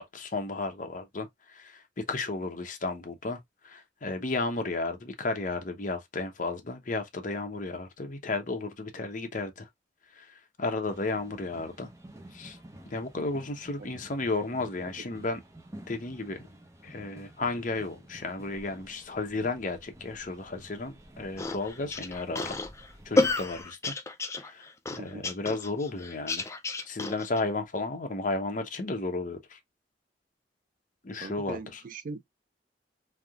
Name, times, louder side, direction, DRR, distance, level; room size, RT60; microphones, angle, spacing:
voice 1, 0.0-9.7 10.1-11.9 12.3-12.6 12.9-15.4 15.9-16.5 16.8-22.6 23.0-23.9 24.3-26.4 26.9-29.6 31.0-31.8, left 3 dB, 45° left, 0.8 m, -33 dB
sound 1, 10.9-23.6, right 1 dB, 15° right, 0.7 m, -51 dB
sound 2, 21.4-27.4, left 2 dB, 15° left, 0.4 m, -31 dB
voice 2, 25.0-25.3 31.2-32.2, right 4 dB, 50° right, 0.4 m, -41 dB
3.4 x 2.8 x 2.3 m
head